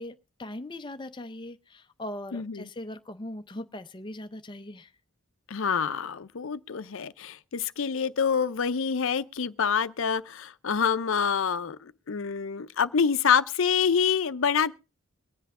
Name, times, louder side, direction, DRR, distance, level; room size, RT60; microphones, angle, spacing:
voice 1, 0.0-4.9, left 1 dB, 20° left, 0.6 m, -40 dB
voice 2, 2.3-2.7 5.5-14.7, left 6 dB, 70° left, 0.6 m, -26 dB
23.0 x 8.1 x 3.6 m
head